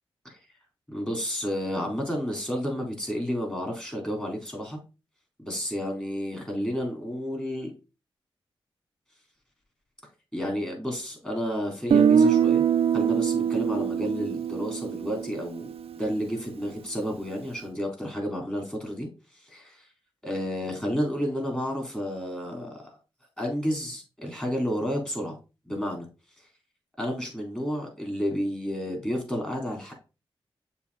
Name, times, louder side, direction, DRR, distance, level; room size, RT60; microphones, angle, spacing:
voice 1, 0.9-4.8 5.4-7.7 10.3-12.6 12.9-19.1 19.5-19.7 20.2-23.0 23.4-25.4 25.7-26.1 27.0-29.9, equal, 10° left, 1 dB, 3.5 m, -31 dB
Guitar, 11.9-15.8, right 7 dB, 80° right, 0.6 m, -23 dB
6.9 x 3.1 x 4.8 m, 0.30 s
cardioid pair, 45°, 10 cm